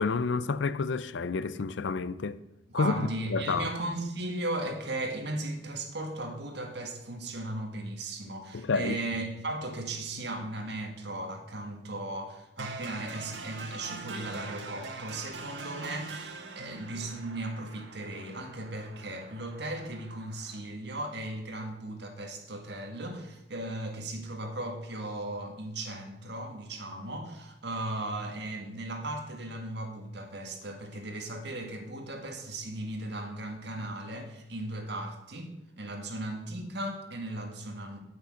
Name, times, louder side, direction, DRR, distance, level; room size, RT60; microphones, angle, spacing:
voice 1, 0.0-2.4 2.7-3.7 8.5-9.0, left 4 dB, 80° left, 0.5 m, -29 dB
voice 2, 2.7-35.5 35.8-38.0, right 1 dB, 65° right, 1.9 m, -37 dB
sound 1, 12.6-20.6, right 3 dB, 85° right, 1.5 m, -43 dB
9.0 x 8.2 x 6.3 m
head